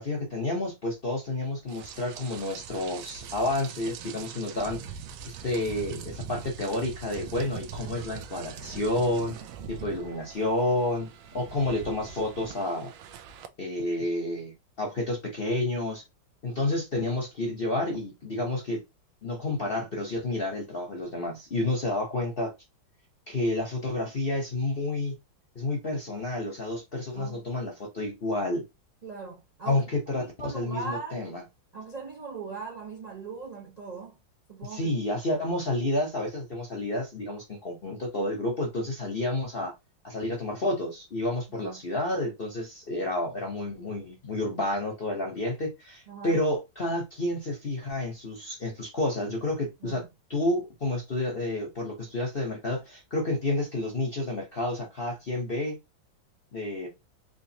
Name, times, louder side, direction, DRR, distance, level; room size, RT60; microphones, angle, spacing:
voice 1, 0.0-4.8 5.2-9.4 9.7-11.1 11.3-12.9 13.6-16.0 16.4-18.8 19.2-22.5 23.3-25.2 25.5-28.6 29.6-31.4 34.7-39.7 40.0-50.0 50.3-55.8 56.5-56.9, left 1 dB, 50° left, 0.6 m, -30 dB
Rain, 1.7-13.5, right 7 dB, 85° right, 1.4 m, -42 dB
voice 2, 29.0-29.8 30.2-31.3 31.7-34.2 34.5-34.9 35.4-35.5 41.6-41.8 46.1-46.4 49.8-50.1, right 4 dB, 60° right, 0.4 m, -40 dB
3.8 x 3.1 x 2.7 m
omnidirectional pair, 2.2 m